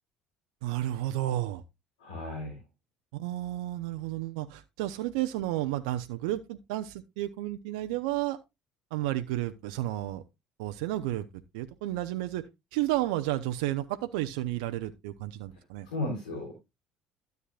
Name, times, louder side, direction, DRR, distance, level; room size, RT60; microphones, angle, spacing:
voice 1, 0.6-1.6 3.1-8.4 8.9-10.2 10.6-11.2 11.5-12.4 12.7-15.9, right 14 dB, 80° right, 0.7 m, -32 dB
voice 2, 2.0-2.6 15.9-16.5, left 2 dB, 90° left, 3.6 m, -34 dB
13.0 x 8.1 x 2.4 m
hypercardioid pair, 70°, 4 cm